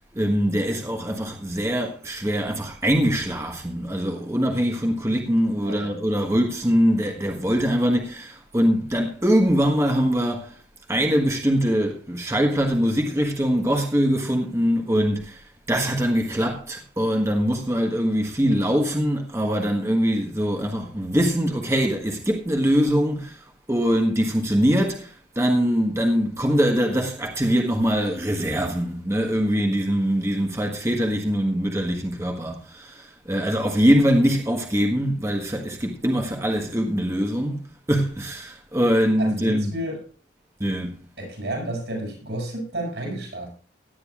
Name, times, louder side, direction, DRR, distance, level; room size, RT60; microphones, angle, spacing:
voice 1, 0.1-10.6 10.9-39.7 40.6-41.0, equal, 15° right, 1.4 m, -23 dB
voice 2, 5.6-5.9 39.2-40.0 41.2-43.5, right 1 dB, 75° right, 7.4 m, -31 dB
17.5 x 10.5 x 2.5 m
head